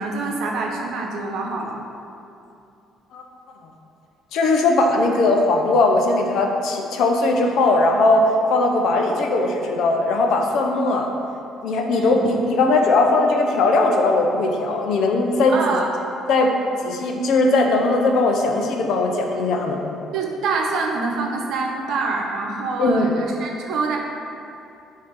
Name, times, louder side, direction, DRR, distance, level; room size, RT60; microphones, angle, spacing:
voice 1, 0.0-1.8 11.9-12.2 15.5-15.9 20.1-24.0, right 3 dB, 70° right, 0 dB, 0.9 m, -25 dB
voice 2, 4.3-8.2 8.5-11.1 11.6-15.6 16.3-16.5 16.8-19.8 22.8-23.1, left 2 dB, 70° left, 2 dB, 0.7 m, -19 dB
7.5 x 2.9 x 5.2 m, 2.6 s
cardioid pair, 95°, 0 cm